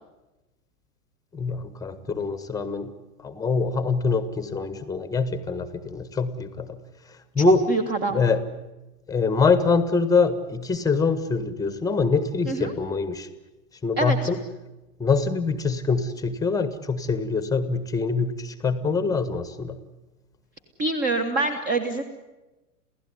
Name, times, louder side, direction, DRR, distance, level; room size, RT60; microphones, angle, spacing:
voice 1, 1.3-2.9 3.2-6.8 7.3-7.6 8.1-8.4 9.1-13.3 13.8-14.4 15.0-19.8, left 4 dB, 10° left, 13 dB, 1.4 m, -24 dB
voice 2, 7.7-8.2 12.5-12.7 14.0-14.2 20.8-22.0, right 3 dB, 20° right, 6 dB, 1.7 m, -25 dB
29.0 x 16.0 x 9.6 m, 1.1 s
figure-of-eight pair, 105°, 46 cm